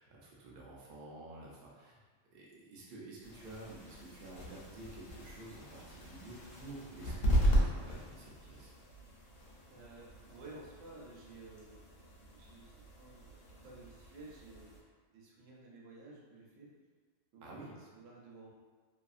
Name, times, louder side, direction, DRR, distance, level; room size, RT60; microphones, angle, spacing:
voice 1, 0.0-2.0 2.3-8.7 17.4-17.7, right 2 dB, 65° right, -4 dB, 0.5 m, -50 dB
sound 1, 3.2-14.8, equal, 85° left, 1.0 m, -37 dB
voice 2, 9.7-11.9 12.2-14.8 15.1-16.7 17.3-17.4 17.8-18.5, right 2 dB, 80° right, -3 dB, 1.0 m, -53 dB
2.7 x 2.5 x 2.3 m, 1.4 s
omnidirectional pair, 1.3 m